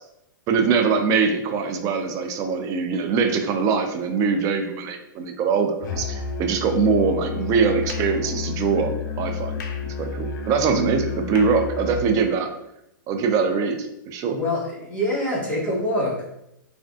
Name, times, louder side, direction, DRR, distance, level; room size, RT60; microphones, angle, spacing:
voice 1, 0.5-9.5 9.8-12.5 13.1-14.4, right 5 dB, 30° right, 5 dB, 0.4 m, -23 dB
Musical instrument, 5.8-12.1, left 6 dB, 65° left, 0.5 m, -30 dB
voice 2, 14.3-16.2, left 1 dB, 10° left, -6 dB, 1.0 m, -25 dB
3.4 x 2.3 x 2.3 m, 0.82 s
hypercardioid pair, 125°, 11 cm